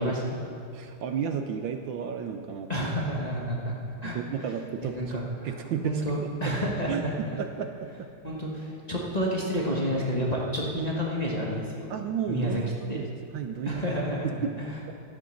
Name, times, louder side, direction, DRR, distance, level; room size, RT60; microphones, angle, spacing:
voice 1, 0.0-0.5 2.7-3.8 4.0-4.2 4.9-5.6 5.8-7.3 8.2-11.9 12.3-12.6 12.9-13.0 13.6-14.8, equal, 25° left, -4 dB, 1.1 m, -30 dB
voice 2, 0.7-2.9 4.0-6.0 6.4-6.5 6.9-7.0 7.4-8.1 11.9-13.0 13.3-13.8 14.4-14.5 14.9-15.0, right 7 dB, 70° right, 6 dB, 1.3 m, -33 dB
12.5 x 9.1 x 6.4 m, 2.4 s
omnidirectional pair, 2.3 m